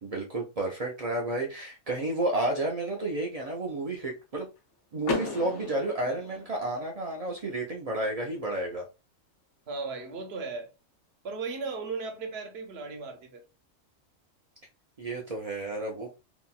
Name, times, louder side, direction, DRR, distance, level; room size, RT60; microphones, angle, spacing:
voice 1, 0.0-4.5 4.9-8.9 15.0-16.1, right 2 dB, 70° right, 0.3 m, -31 dB
Car / Door, 5.0-7.0, left 3 dB, 65° left, 0.9 m, -35 dB
voice 2, 9.7-10.7 11.2-13.4, right 4 dB, 55° right, 0.9 m, -36 dB
2.9 x 2.7 x 2.3 m
omnidirectional pair, 1.4 m